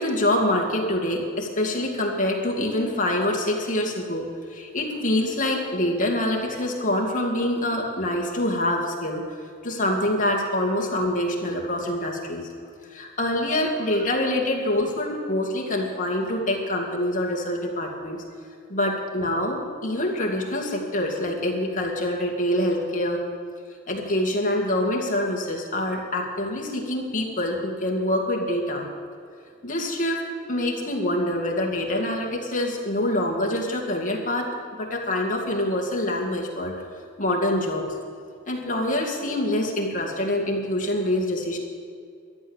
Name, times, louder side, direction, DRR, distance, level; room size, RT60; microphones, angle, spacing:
voice 1, 0.0-9.2 9.6-12.5 12.9-18.2 18.7-23.2 23.9-28.8 29.6-34.5 34.8-36.7 37.2-37.9 38.4-41.6, left 1 dB, 40° left, 0 dB, 2.4 m, -25 dB
13.0 x 11.5 x 7.3 m, 2.3 s
head